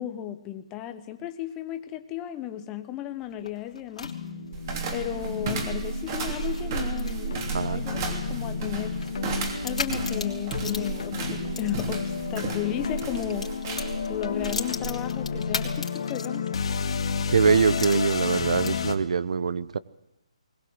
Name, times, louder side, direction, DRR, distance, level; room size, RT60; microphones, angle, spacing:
voice 1, 0.0-4.1 4.9-9.0 9.6-13.6 14.1-16.5, left 12 dB, 15° left, 9 dB, 1.0 m, -34 dB
sound 1, 3.2-12.4 12.8-16.7 17.0-17.1 17.7-19.0, left 4 dB, 75° left, 3.3 m, -39 dB
sound 2, 4.0-18.9, left 6 dB, 55° left, 1.6 m, -32 dB
sound 3, 4.5-15.8, right 5 dB, 30° right, 3.1 m, -34 dB
voice 2, 17.3-19.8, right 5 dB, 65° right, 18 dB, 0.9 m, -23 dB
20.5 x 19.5 x 7.9 m, 0.87 s
hypercardioid pair, 160°, 4 cm